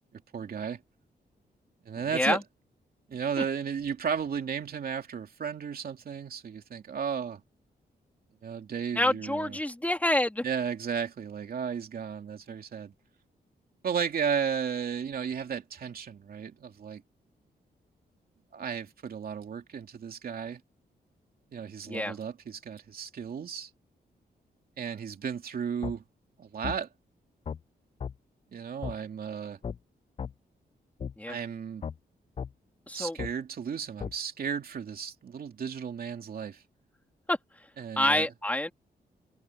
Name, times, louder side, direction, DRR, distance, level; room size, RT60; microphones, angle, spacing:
voice 1, 0.1-0.8 1.8-2.4 3.1-7.4 8.4-9.6 10.4-12.9 13.8-17.0 18.5-20.6 21.5-23.7 24.8-26.0 26.4-26.9 28.5-29.6 31.3-31.8 32.9-36.6 37.8-38.3, right 7 dB, 65° right, 2.9 m, -34 dB
voice 2, 8.9-10.4 21.9-22.1 31.2-31.4 32.9-33.2 37.3-37.4 38.0-38.7, left 1 dB, 10° left, 3.2 m, -27 dB
sound 1, 25.8-26.0 26.6-26.8 27.5-27.6 28.0-28.1 28.8-29.0 29.6-29.8 30.2-30.3 31.0-31.1 31.8-32.0 32.4-32.5 33.2-33.3 34.0-34.1, left 7 dB, 35° left, 0.5 m, -35 dB
wide cardioid pair, 115°, 17 cm